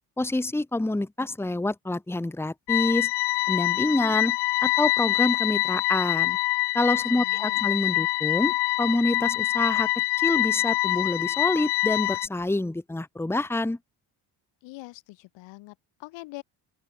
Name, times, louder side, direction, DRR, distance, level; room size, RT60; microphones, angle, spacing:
voice 1, 0.2-3.1 3.5-4.4 4.6-6.4 6.7-9.9 10.2-13.8, left 2 dB, 5° left, 1.4 m, -27 dB
sound 1, 2.7-12.3, left 20 dB, 70° left, 0.6 m, -25 dB
voice 2, 7.1-7.6 14.6-16.4, left 20 dB, 90° left, 5.1 m, -43 dB
open air
cardioid pair, 105°, 43 cm